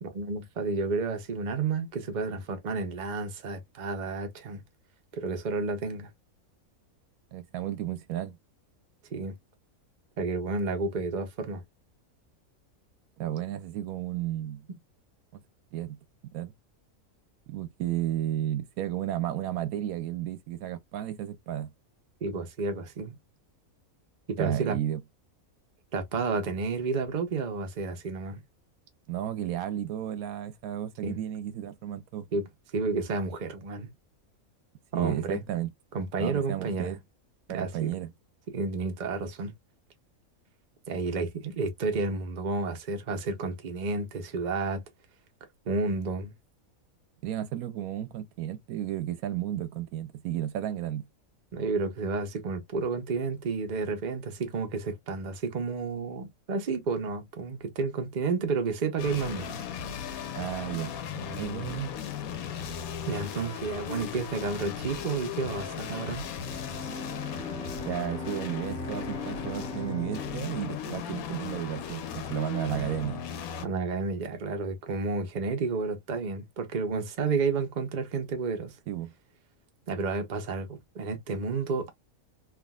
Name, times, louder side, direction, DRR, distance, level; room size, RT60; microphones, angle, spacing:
voice 1, 0.0-4.6 5.1-6.1 9.1-9.4 10.2-11.6 22.2-23.2 24.3-24.8 25.9-28.4 31.0-31.2 32.3-33.9 34.9-35.4 35.9-36.9 37.5-37.9 38.5-39.5 40.9-44.8 45.7-46.3 51.5-59.6 63.0-66.2 73.6-78.8 79.9-81.9, right 4 dB, 40° right, 0.7 m, -31 dB
voice 2, 7.3-8.4 13.2-14.7 15.7-16.0 16.3-16.5 17.5-21.7 24.4-25.0 29.1-32.3 34.9-35.7 36.2-37.0 37.5-38.1 47.2-51.0 60.3-60.9 61.2-62.0 67.9-73.2 78.9-79.1, right 12 dB, 80° right, 1.1 m, -33 dB
sound 1, 59.0-73.7, left 7 dB, 75° left, 1.1 m, -37 dB
Bowed string instrument, 66.4-72.4, equal, 5° left, 0.5 m, -42 dB
3.5 x 2.4 x 2.2 m
omnidirectional pair, 1.5 m